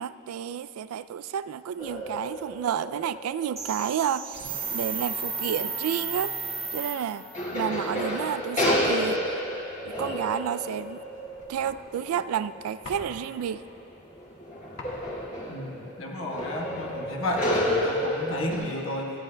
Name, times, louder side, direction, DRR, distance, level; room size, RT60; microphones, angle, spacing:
voice 1, 0.0-6.4 6.7-7.3 7.5-9.2 9.9-11.0 11.5-13.6, right 8 dB, 85° right, 16 dB, 0.3 m, -30 dB
sound 1, 1.8-5.0 5.5-5.6 6.9-7.0 7.3-18.6, equal, 35° left, 2.2 m, -31 dB
sound 2, 3.6-7.4, right 4 dB, 30° right, 1.6 m, -33 dB
sound 3, 9.1-17.2, left 2 dB, 90° left, 1.5 m, -49 dB
voice 2, 15.5-19.1, left 1 dB, 65° left, 0 dB, 1.2 m, -32 dB
18.0 x 13.5 x 2.2 m, 2.8 s
head